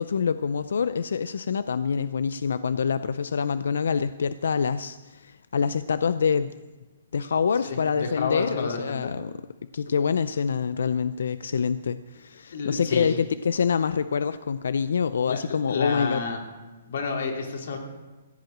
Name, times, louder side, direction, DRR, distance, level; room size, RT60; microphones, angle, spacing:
voice 1, 0.0-6.5 7.1-9.3 9.7-16.2, left 6 dB, 80° left, 14 dB, 0.5 m, -26 dB
voice 2, 7.6-9.1 12.5-13.2 15.3-15.4 15.7-16.4 16.9-17.8, left 4 dB, 65° left, 2 dB, 2.9 m, -30 dB
15.5 x 7.9 x 7.9 m, 1.2 s
hypercardioid pair, 160°, 0 cm